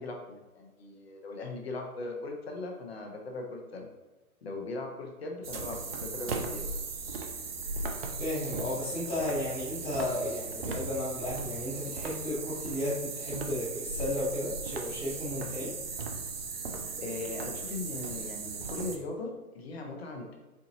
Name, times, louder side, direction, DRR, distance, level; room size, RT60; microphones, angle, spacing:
voice 1, 0.0-3.9 4.4-6.6 17.0-20.4, left 2 dB, 45° left, 2 dB, 0.8 m, -39 dB
sound 1, 5.4-19.0, right 4 dB, 40° right, 0.6 m, -37 dB
voice 2, 8.2-15.8, left 1 dB, ahead, -14 dB, 0.7 m, -34 dB
4.5 x 3.9 x 2.8 m, 1.2 s
figure-of-eight pair, 135°, 44 cm